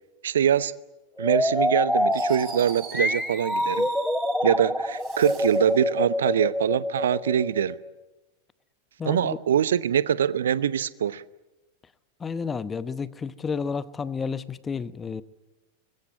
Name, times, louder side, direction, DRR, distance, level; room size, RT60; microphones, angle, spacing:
voice 1, 0.2-0.7 1.2-3.9 4.4-7.8 9.0-11.2, right 9 dB, 65° right, 0.9 m, -24 dB
sound 1, 1.2-7.9, left 1 dB, ahead, 1.6 m, -26 dB
Fireworks, 2.1-4.5 4.9-5.7, right 7 dB, 40° right, 7.4 m, -44 dB
voice 2, 9.0-9.4 12.2-15.2, left 5 dB, 15° left, 1.0 m, -31 dB
24.5 x 21.5 x 8.9 m
figure-of-eight pair, 90°, 0 cm